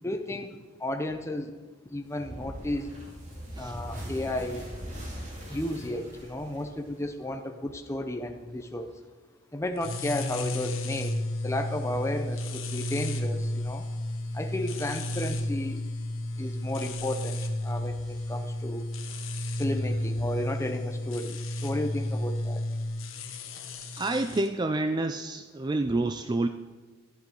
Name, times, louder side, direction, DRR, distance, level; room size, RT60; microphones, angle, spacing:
voice 1, 0.0-1.5 1.9-2.9 3.6-4.6 5.5-8.9 9.5-13.9 14.3-15.8 16.4-18.9 19.6-22.7, left 1 dB, 15° left, 6 dB, 0.7 m, -33 dB
sound 1, 2.2-7.3, equal, 35° right, 2.8 m, -41 dB
sound 2, 9.8-24.5, left 1 dB, 80° left, 1.1 m, -32 dB
voice 2, 24.0-26.5, right 2 dB, 20° right, 9 dB, 0.3 m, -28 dB
12.0 x 11.5 x 4.6 m, 1.3 s
head